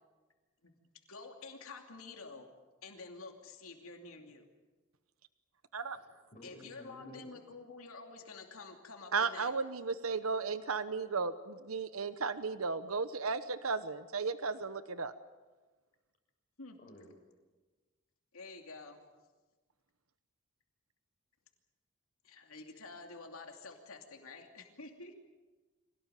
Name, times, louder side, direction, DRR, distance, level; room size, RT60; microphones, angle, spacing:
voice 1, 1.1-2.5 2.8-4.4 6.4-9.5 16.6-16.8 18.3-19.0 22.2-25.1, left 3 dB, 90° left, 3 dB, 2.7 m, -49 dB
voice 2, 6.3-7.3 16.8-17.1, left 1 dB, 40° left, 1 dB, 6.6 m, -53 dB
voice 3, 9.1-15.1, right 4 dB, 90° right, 12 dB, 1.0 m, -35 dB
25.5 x 18.0 x 9.3 m, 1.3 s
head